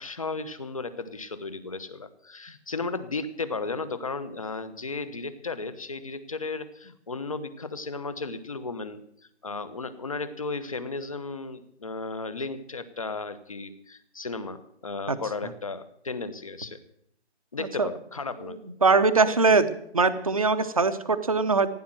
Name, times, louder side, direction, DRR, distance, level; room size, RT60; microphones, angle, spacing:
voice 1, 0.0-9.0 9.4-16.8 17.5-18.6, left 3 dB, 30° left, 14 dB, 1.0 m, -34 dB
voice 2, 18.4-19.7 19.9-21.7, right 4 dB, 30° right, 10 dB, 0.8 m, -22 dB
16.0 x 10.0 x 7.6 m, 0.70 s
hypercardioid pair, 175°, 34 cm